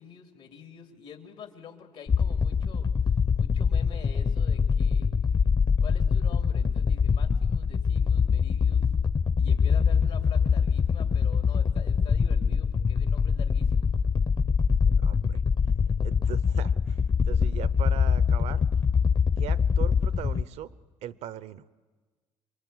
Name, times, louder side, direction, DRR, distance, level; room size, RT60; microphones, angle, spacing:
voice 1, 0.0-2.9 3.4-5.1 5.8-8.8 9.4-13.9, left 7 dB, 80° left, 4 dB, 2.8 m, -47 dB
sound 1, 2.1-20.4, left 6 dB, 40° left, 0.8 m, -24 dB
voice 2, 14.9-15.4 16.0-17.0 17.2-18.6 19.4-20.7 21.0-21.6, right 11 dB, 75° right, 17 dB, 0.8 m, -39 dB
28.0 x 23.0 x 9.0 m, 1.4 s
supercardioid pair, 80°, 11 cm